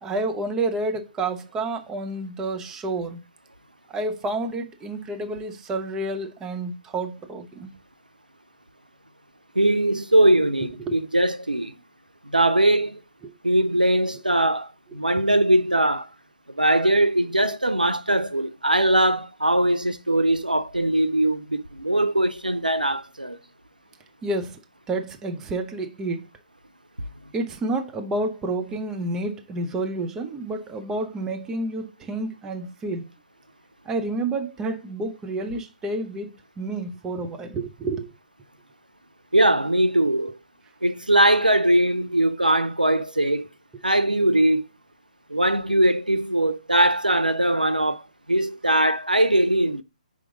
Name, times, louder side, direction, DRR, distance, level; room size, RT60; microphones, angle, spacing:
voice 1, 0.0-3.2 3.9-7.8 10.8-10.9 13.2-13.3 24.2-24.6 24.9-26.2 27.3-33.1 33.8-38.1, right 2 dB, 10° right, 0.7 m, -29 dB
voice 2, 9.6-11.7 12.3-13.0 13.4-16.1 16.5-23.4 39.3-40.4 40.8-43.5 43.8-44.6 45.3-48.0 48.3-49.8, right 1 dB, 90° right, 0.7 m, -21 dB
6.1 x 4.9 x 3.8 m
figure-of-eight pair, 135°, 4 cm